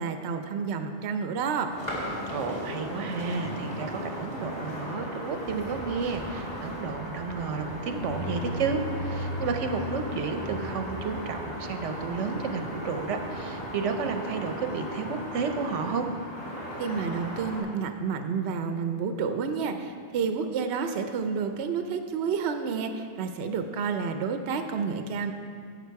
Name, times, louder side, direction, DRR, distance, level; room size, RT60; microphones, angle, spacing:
voice 1, 0.0-1.7 16.8-25.3, right 6 dB, 70° right, 7 dB, 0.9 m, -30 dB
sound 1, 1.7-17.6, equal, 35° left, 2.2 m, -37 dB
voice 2, 2.3-16.1, right 5 dB, 90° right, 6 dB, 1.1 m, -31 dB
sound 2, 7.9-14.7 15.4-15.8 16.1-16.2 16.6-18.0, left 1 dB, 90° left, 3.1 m, -38 dB
11.0 x 7.8 x 4.7 m, 2.2 s
omnidirectional pair, 1.2 m